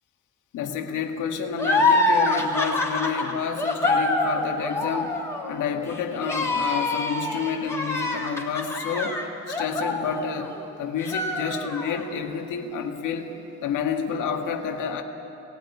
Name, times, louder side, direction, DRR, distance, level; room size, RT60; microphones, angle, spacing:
voice 1, 0.5-5.2 5.5-9.2 9.5-13.3 13.6-15.0, left 6 dB, 90° left, 4 dB, 1.8 m, -29 dB
sound 1, 1.6-10.6 11.0-12.0, left 2 dB, 10° left, 3.0 m, -25 dB
18.5 x 16.5 x 10.0 m, 2.9 s
cardioid pair, 90°, 30 cm